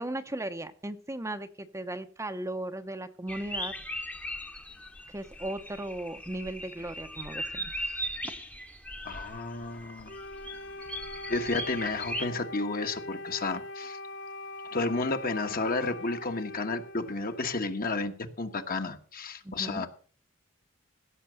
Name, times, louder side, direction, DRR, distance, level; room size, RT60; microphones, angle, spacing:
voice 1, 0.0-3.7 5.1-8.0 8.2-8.3 19.4-19.9, right 1 dB, 15° right, 8 dB, 0.8 m, -37 dB
sound 1, 3.3-12.2, equal, 5° left, 1.0 m, -39 dB
voice 2, 9.0-10.1 11.3-14.0 14.7-19.9, left 3 dB, 45° left, 6 dB, 1.4 m, -32 dB
Wind instrument woodwind instrument, 10.1-17.8, left 2 dB, 65° left, 0.9 m, -42 dB
16.0 x 6.6 x 6.5 m, 0.41 s
head